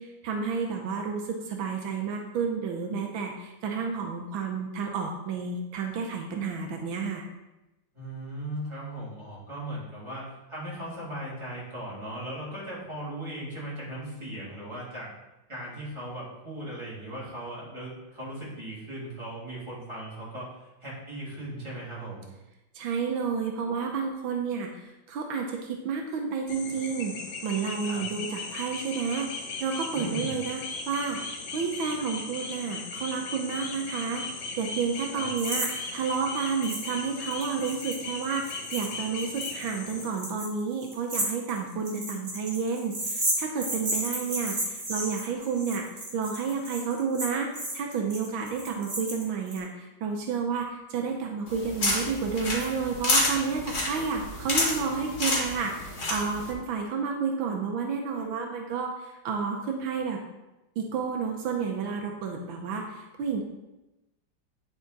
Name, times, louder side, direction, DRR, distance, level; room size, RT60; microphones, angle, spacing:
voice 1, 0.0-7.2 22.8-27.1 27.4-29.3 29.6-30.6 30.9-31.2 31.5-45.9 46.1-47.5 47.7-60.2 60.8-63.4, right 5 dB, 80° right, 2 dB, 1.6 m, -31 dB
voice 2, 7.9-15.1 15.5-22.3 27.8-28.0 29.9-30.4 35.1-35.3, right 1 dB, 15° right, -8 dB, 3.0 m, -38 dB
sound 1, 26.5-40.1, left 3 dB, 85° left, 1.8 m, -37 dB
sound 2, 35.4-35.7 35.9-36.0 36.6-36.9 37.2-49.6, right 1 dB, 35° right, 1.9 m, -33 dB
sound 3, 51.5-56.5, left 2 dB, 45° left, 2.3 m, -29 dB
9.7 x 4.9 x 4.0 m, 0.98 s
omnidirectional pair, 2.1 m